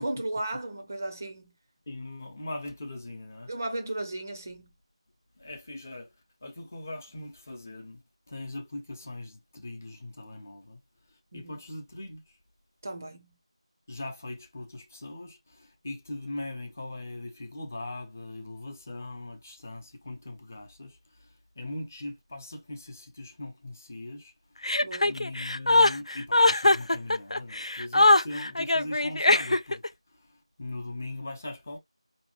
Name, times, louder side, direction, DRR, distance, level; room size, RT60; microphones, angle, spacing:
voice 1, 0.0-1.5 3.5-4.7 11.3-11.6 12.8-13.3 24.8-25.2, right 1 dB, 25° right, 0.6 m, -35 dB
voice 2, 1.9-3.5 5.4-6.1 6.4-8.0 8.3-10.8 11.1-12.4 13.9-24.7 25.0-31.8, left 2 dB, 25° left, 0.9 m, -40 dB
Chuckle chortle, 24.6-29.9, left 2 dB, 70° left, 0.5 m, -22 dB
5.0 x 3.0 x 2.9 m
figure-of-eight pair, 175°, 3 cm